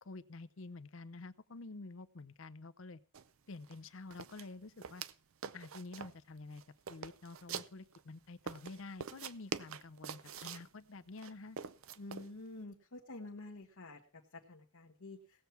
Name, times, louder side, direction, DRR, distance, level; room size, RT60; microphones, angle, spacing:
voice 1, 0.0-3.0 3.5-5.0 5.5-6.6 6.9-11.6, left 3 dB, 65° left, 13 dB, 0.6 m, -49 dB
sound 1, 3.1-3.3 3.6-3.8 4.1-5.1 5.4-6.2 6.6-8.0 8.5-10.7 11.2-12.3, right 6 dB, 75° right, 0.5 m, -45 dB
voice 2, 12.0-15.5, left 2 dB, 85° left, 0 dB, 1.2 m, -49 dB
18.0 x 7.1 x 4.5 m, 0.38 s
head